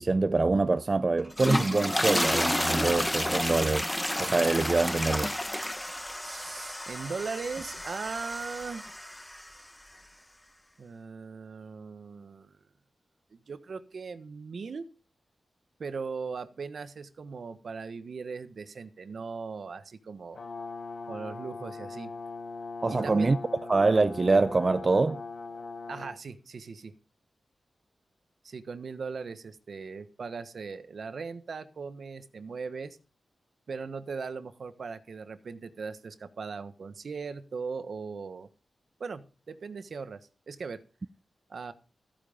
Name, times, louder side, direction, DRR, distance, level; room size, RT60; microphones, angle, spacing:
voice 1, 0.0-5.3 22.8-23.4 23.7-25.2, right 3 dB, 40° right, 0.5 m, -25 dB
sound 1, 1.2-9.5, left 1 dB, 10° left, 1.1 m, -31 dB
voice 2, 6.2-8.8 10.8-12.6 13.3-14.8 15.8-20.4 21.1-22.1 22.9-23.4 25.9-26.9 28.4-33.0 33.7-38.5 39.0-40.2 40.5-40.8 41.5-41.7, right 5 dB, 65° right, 1.3 m, -39 dB
Brass instrument, 20.3-26.2, left 4 dB, 65° left, 4.2 m, -40 dB
14.5 x 9.0 x 5.1 m
wide cardioid pair, 85°, 0 cm